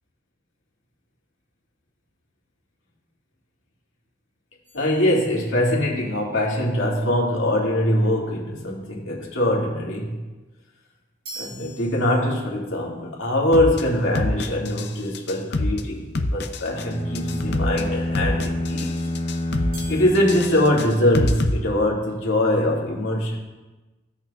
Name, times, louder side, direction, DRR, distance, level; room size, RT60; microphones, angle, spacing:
sound 1, 4.6-5.9 11.2-12.7 19.7-21.9, right 2 dB, 50° right, 2.6 m, -44 dB
voice 1, 4.7-10.2 11.4-18.9 19.9-23.4, left 1 dB, 85° left, -3 dB, 2.1 m, -22 dB
sound 2, 13.5-13.8 14.1-14.9 15.1-15.8 16.1-16.8 17.1-17.8 18.1-18.9 19.1-19.8 20.1-21.5, left 2 dB, 55° left, 0.6 m, -25 dB
sound 3, 16.7-21.1, left 1 dB, 30° left, 0.9 m, -28 dB
15.5 x 6.0 x 2.3 m, 1.2 s
head